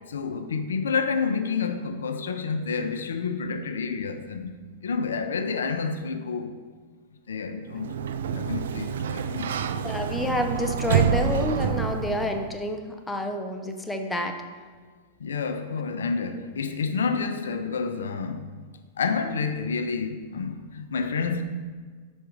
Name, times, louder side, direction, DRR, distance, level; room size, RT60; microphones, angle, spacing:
voice 1, 0.1-4.5 4.8-6.6 7.3-7.9 8.3-9.5 15.2-18.4 19.0-21.4, left 5 dB, 85° left, 0.5 m, -29 dB
Sliding door, 7.7-12.6, right 7 dB, 75° right, 0.3 m, -27 dB
voice 2, 9.8-14.4, left 1 dB, 10° left, 0.6 m, -29 dB
5.3 x 4.8 x 4.6 m
hypercardioid pair, 110°, 0 cm